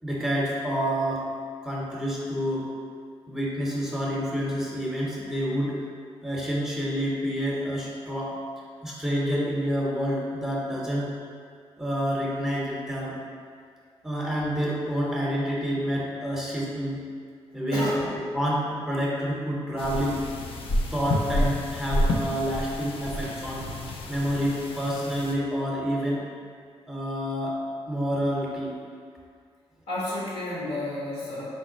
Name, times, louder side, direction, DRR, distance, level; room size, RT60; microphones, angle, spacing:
voice 1, 0.0-1.3 1.6-2.7 3.3-5.8 6.2-8.4 8.8-11.1 11.8-13.2 14.0-17.0 17.5-20.2 20.9-23.7 24.1-26.2 26.9-28.7, equal, 5° right, -5 dB, 0.8 m, -28 dB
voice 2, 17.7-18.1 29.9-31.4, left 1 dB, 80° left, -7 dB, 1.3 m, -31 dB
sound 1, 19.8-25.3, left 1 dB, 60° left, 0.5 m, -29 dB
4.2 x 2.1 x 3.9 m, 2.1 s
cardioid pair, 75°, 11 cm